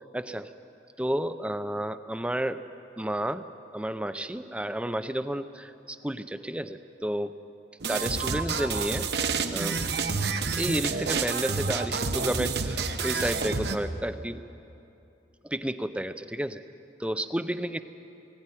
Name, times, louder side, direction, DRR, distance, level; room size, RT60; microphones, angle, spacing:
voice 1, 0.1-0.5 1.0-2.6 3.0-3.4 3.7-7.4 7.9-9.1 9.5-10.1 10.6-14.4 15.4-16.6 17.0-17.8, right 1 dB, 5° right, 11 dB, 0.5 m, -31 dB
sound 1, 7.8-13.8, right 4 dB, 60° right, 1.1 m, -29 dB
19.5 x 17.5 x 9.9 m, 2.8 s
head